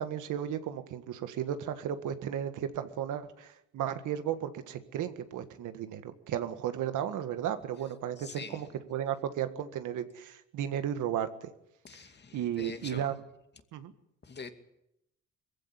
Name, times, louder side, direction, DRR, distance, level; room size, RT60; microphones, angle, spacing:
voice 1, 0.0-11.5 12.3-13.2 13.7-13.9, right 10 dB, 80° right, 9 dB, 1.8 m, -34 dB
voice 2, 8.2-8.8 11.8-13.2 14.2-14.5, left 4 dB, 35° left, 7 dB, 2.5 m, -45 dB
21.0 x 15.5 x 9.9 m, 0.84 s
cardioid pair, 90°, 30 cm